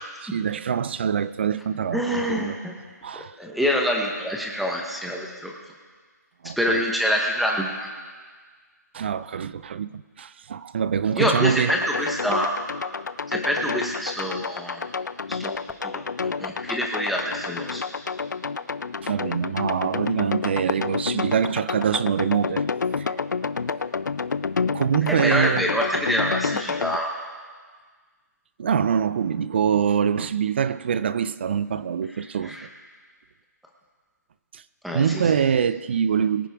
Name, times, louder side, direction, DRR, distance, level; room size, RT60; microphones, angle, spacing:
voice 1, 0.2-2.6 3.0-3.3 6.4-6.8 8.9-11.8 19.0-22.7 23.0-23.2 24.7-25.6 28.6-32.6 34.5-34.6 34.9-36.5, right 7 dB, 35° right, 0.4 m, -24 dB
voice 2, 1.9-2.7 3.4-5.5 6.6-7.9 11.2-12.5 13.3-14.8 15.3-15.5 15.8-17.8 25.1-27.1 32.4-32.7 34.8-35.0, equal, ahead, 1.0 m, -26 dB
sound 1, 11.7-27.0, left 5 dB, 80° left, 0.6 m, -29 dB
22.5 x 9.9 x 3.5 m
hypercardioid pair, 160°, 10 cm